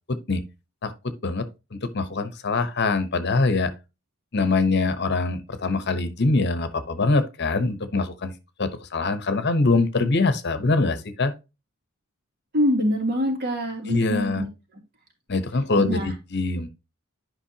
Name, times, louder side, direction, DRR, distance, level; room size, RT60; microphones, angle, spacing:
voice 1, 0.1-0.4 0.8-3.7 4.3-8.3 8.6-11.3 13.9-14.4 15.3-16.7, left 3 dB, 55° left, 1.0 m, -24 dB
voice 2, 12.5-14.5 15.8-16.1, equal, 50° right, 2.9 m, -24 dB
11.0 x 5.4 x 2.8 m
head